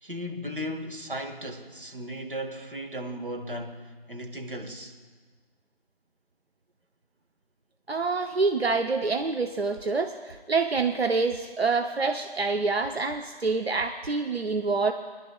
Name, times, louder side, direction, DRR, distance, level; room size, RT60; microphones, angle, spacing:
voice 1, 0.0-5.0, equal, 60° right, 1.3 m, -36 dB
voice 2, 7.9-14.9, right 4 dB, 90° right, 0.7 m, -26 dB
23.5 x 11.0 x 2.3 m
figure-of-eight pair, 175°, 30 cm